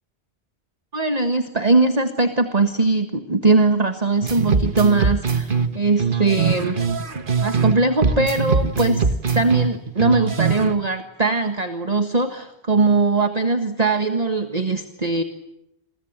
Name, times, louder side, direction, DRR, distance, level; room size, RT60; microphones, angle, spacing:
voice 1, 0.9-6.9 7.4-15.2, right 3 dB, 35° right, 7 dB, 1.7 m, -20 dB
sound 1, 4.2-7.8 8.0-10.7, right 5 dB, 55° right, 1.7 m, -22 dB
29.0 x 22.5 x 8.9 m, 0.85 s
omnidirectional pair, 1.1 m